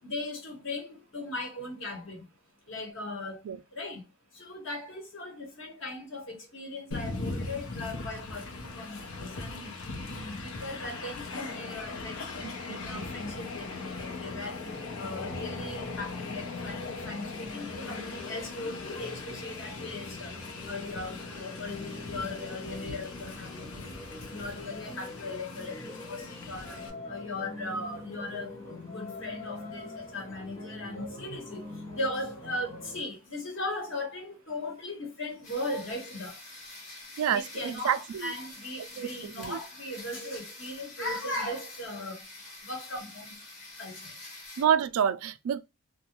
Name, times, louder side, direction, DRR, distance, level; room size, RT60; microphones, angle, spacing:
voice 1, 0.0-2.3 2.6-3.4 3.7-42.3 42.6-43.4 43.8-44.2, left 2 dB, 60° left, 1.1 m, -38 dB
Train, 6.9-26.9, left 3 dB, 80° left, 0.7 m, -39 dB
voice 2, 12.7-13.0 37.2-38.3 39.0-39.1 39.4-39.6 44.6-45.6, right 8 dB, 85° right, 0.3 m, -28 dB
sound 1, 14.2-33.0, left 2 dB, 15° left, 0.6 m, -45 dB
sound 2, 35.4-44.6, left 2 dB, 35° left, 1.0 m, -47 dB
2.4 x 2.2 x 2.8 m
head